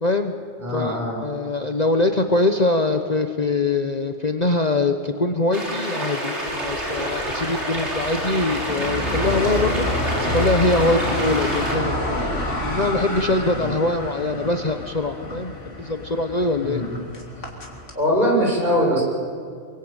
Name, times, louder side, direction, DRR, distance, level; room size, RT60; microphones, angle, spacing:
voice 1, 0.0-0.3 0.7-1.0 1.2-9.9 10.2-12.0 12.6-16.8, left 2 dB, 35° left, 6 dB, 1.2 m, -23 dB
voice 2, 0.6-1.2 13.6-13.7 16.6-17.0 18.0-19.0, equal, 40° right, -2 dB, 7.1 m, -21 dB
sound 1, 5.5-11.8, right 1 dB, 65° right, 5.1 m, -28 dB
sound 2, 6.5-18.0, left 1 dB, 80° left, 3.6 m, -29 dB
27.0 x 23.5 x 9.0 m, 2.4 s
omnidirectional pair, 1.2 m